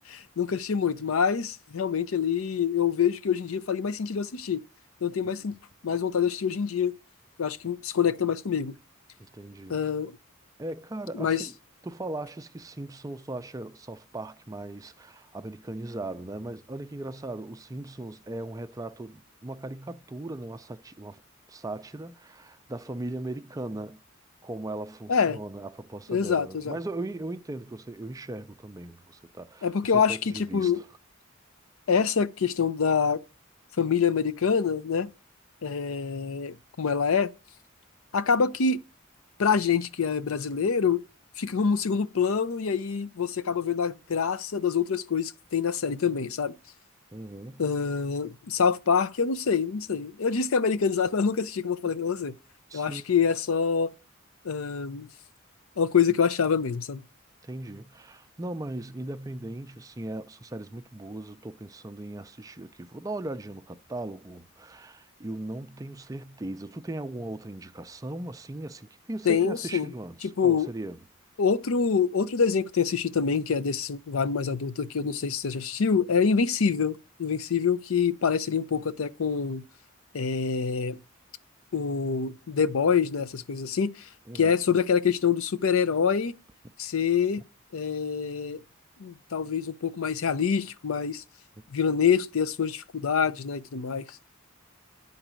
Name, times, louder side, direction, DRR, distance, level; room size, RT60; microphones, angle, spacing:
voice 1, 0.0-4.6 5.0-5.6 5.8-7.0 7.4-8.7 9.7-10.1 11.1-11.5 25.1-25.4 26.1-26.8 29.6-30.8 31.9-33.2 33.8-35.1 35.6-37.3 38.1-38.8 39.4-41.0 41.4-46.5 47.6-52.3 52.7-53.9 54.4-55.1 55.8-57.0 69.3-69.9 70.4-70.7 71.4-79.6 80.1-81.0 81.7-84.1 84.3-86.3 86.8-87.4 87.7-88.6 89.0-91.2 91.7-94.2, left 6 dB, 80° left, 0.6 m, -26 dB
voice 2, 9.2-9.8 10.6-11.5 11.8-21.2 21.5-24.0 24.4-30.9 47.1-47.7 52.7-53.0 57.4-71.0 84.3-84.5, right 2 dB, 15° right, 0.4 m, -38 dB
10.0 x 4.0 x 7.5 m
head